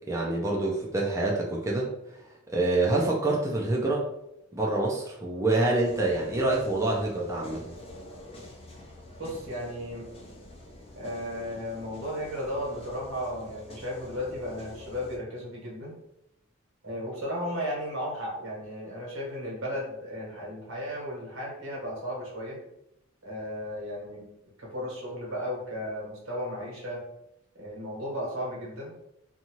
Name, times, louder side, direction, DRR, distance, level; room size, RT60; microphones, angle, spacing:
voice 1, 0.1-1.9 2.5-4.0 4.5-7.7, right 2 dB, 15° right, -3 dB, 0.4 m, -26 dB
sound 1, 5.8-15.2, left 1 dB, 30° left, 0.6 m, -46 dB
voice 2, 9.2-10.1 11.0-15.9 16.8-22.6 23.2-24.3 24.6-27.0 27.5-28.9, equal, 85° right, -4 dB, 1.3 m, -35 dB
2.7 x 2.3 x 2.9 m, 0.82 s
head